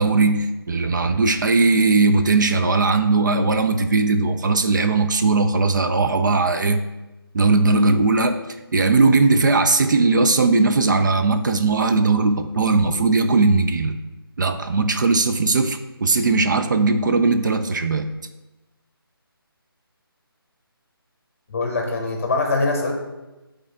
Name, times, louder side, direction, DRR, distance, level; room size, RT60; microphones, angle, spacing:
voice 1, 0.0-6.8 7.3-8.4 8.7-14.0 14.4-18.1, right 3 dB, 55° right, 8 dB, 0.5 m, -18 dB
voice 2, 21.5-22.9, left 3 dB, 35° left, 2 dB, 1.2 m, -23 dB
8.5 x 3.9 x 3.5 m, 1.1 s
figure-of-eight pair, 155°, 13 cm